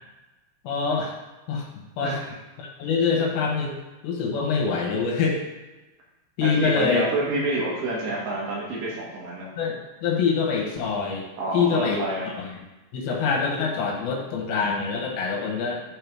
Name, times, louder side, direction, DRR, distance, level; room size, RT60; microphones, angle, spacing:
voice 1, 0.6-1.1 1.5-1.6 2.0-2.1 2.6-3.8 4.0-5.4 6.4-7.0 9.6-11.3 11.5-12.5 12.9-15.8, left 5 dB, 70° left, -1 dB, 2.4 m, -25 dB
voice 2, 2.0-2.3 6.4-9.5 11.4-12.3, right 2 dB, 70° right, -4 dB, 3.3 m, -28 dB
11.5 x 4.5 x 3.4 m, 1.1 s
omnidirectional pair, 5.5 m